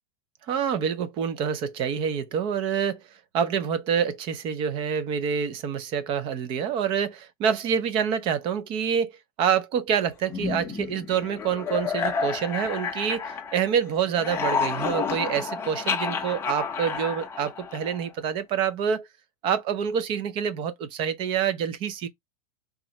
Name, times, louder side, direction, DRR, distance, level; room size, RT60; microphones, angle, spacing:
voice 1, 0.5-3.0 3.3-9.1 9.4-19.1 19.4-22.1, right 7 dB, 25° right, 0.5 m, -27 dB
sound 1, 10.3-13.8 14.1-18.1, left 5 dB, 10° left, 0.6 m, -30 dB
3.5 x 3.1 x 2.9 m
supercardioid pair, 160°, 20 cm